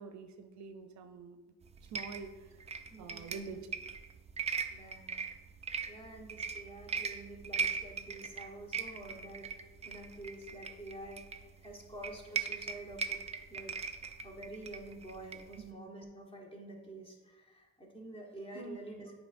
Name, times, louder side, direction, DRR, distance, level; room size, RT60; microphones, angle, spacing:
voice 1, 0.0-1.4 1.8-2.6 3.0-3.7 18.5-18.8, right 4 dB, 65° right, 8 dB, 0.6 m, -46 dB
sound 1, 1.6-15.7, right 5 dB, 20° right, 0.4 m, -40 dB
voice 2, 2.9-3.6 4.7-5.2 5.8-9.5 9.8-13.2 13.5-13.7 14.2-19.1, right 1 dB, 15° left, 0 dB, 1.4 m, -48 dB
8.0 x 5.1 x 2.6 m, 1.2 s
cardioid pair, 90°, 30 cm